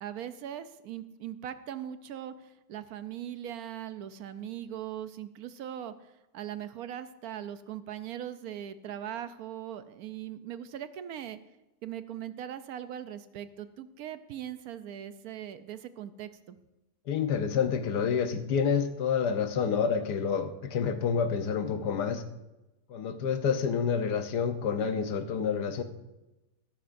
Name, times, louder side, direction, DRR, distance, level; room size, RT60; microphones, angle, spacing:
voice 1, 0.0-11.4 11.8-16.6, right 10 dB, 70° right, 12 dB, 1.0 m, -40 dB
voice 2, 17.1-22.2 22.9-25.8, left 6 dB, 85° left, 8 dB, 1.5 m, -28 dB
14.5 x 13.5 x 2.6 m, 0.99 s
omnidirectional pair, 1.7 m